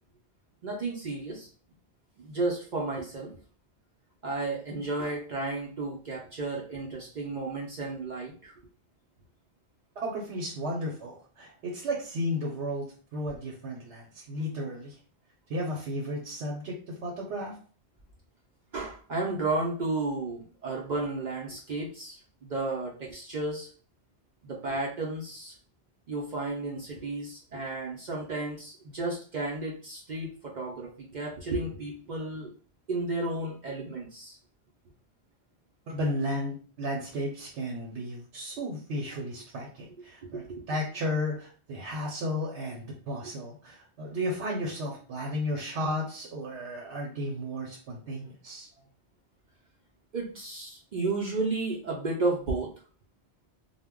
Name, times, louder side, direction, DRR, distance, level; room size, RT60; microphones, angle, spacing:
voice 1, 0.6-1.5 2.2-3.3 4.2-8.5 18.7-23.7 24.4-25.5 26.1-32.5 32.9-34.4 40.2-40.6 43.2-43.3 50.1-52.7, right 2 dB, 55° right, -2 dB, 0.6 m, -33 dB
voice 2, 10.0-14.9 15.5-17.6 35.9-48.7, equal, 80° right, -2 dB, 0.9 m, -34 dB
2.1 x 2.1 x 3.5 m, 0.41 s
omnidirectional pair, 1.1 m